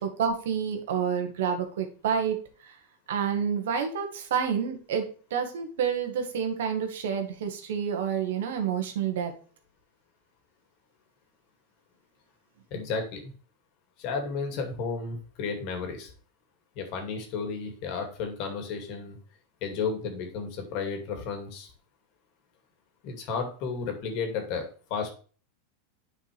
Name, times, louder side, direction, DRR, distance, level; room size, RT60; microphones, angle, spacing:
voice 1, 0.0-2.4 2.6-2.7 3.1-5.0 5.3-9.3, right 7 dB, 80° right, 5 dB, 1.6 m, -29 dB
voice 2, 12.7-13.3 14.0-16.1 16.8-19.2 19.6-21.7 23.0-25.1, left 5 dB, 55° left, 4 dB, 2.3 m, -33 dB
9.1 x 4.8 x 3.4 m, 0.40 s
supercardioid pair, 125°, 0 cm